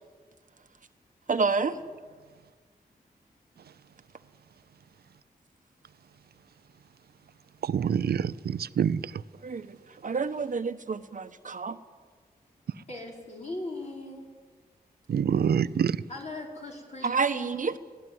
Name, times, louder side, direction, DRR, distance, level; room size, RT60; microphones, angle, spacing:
voice 1, 1.3-1.8 9.4-9.8 10.0-11.8 17.0-17.7, right 4 dB, 55° right, 1.1 m, -28 dB
voice 2, 7.7-9.0 15.1-15.9, right 8 dB, 90° right, 0.7 m, -26 dB
voice 3, 12.9-14.2 16.1-17.7, left 2 dB, 45° left, 5.3 m, -39 dB
24.5 x 17.0 x 9.5 m
cardioid pair, 70°, 16 cm